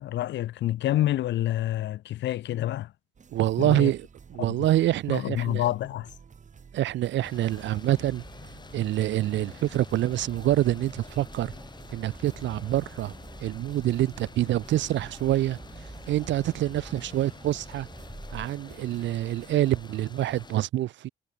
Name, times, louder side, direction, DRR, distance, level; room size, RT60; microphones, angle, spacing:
voice 1, 0.0-2.9 3.6-3.9 5.1-6.1, left 13 dB, 65° left, 0.5 m, -28 dB
sound 1, 3.1-19.8, right 6 dB, 40° right, 1.9 m, -51 dB
voice 2, 3.3-5.6 6.7-8.2 8.7-11.5 11.9-13.1 13.4-15.6 16.1-17.9 18.3-21.1, right 14 dB, 65° right, 0.5 m, -26 dB
sound 2, 7.2-20.6, left 4 dB, 20° left, 0.9 m, -47 dB
sound 3, 10.0-18.5, right 1 dB, 5° right, 0.5 m, -47 dB
cardioid pair, 90°, 20 cm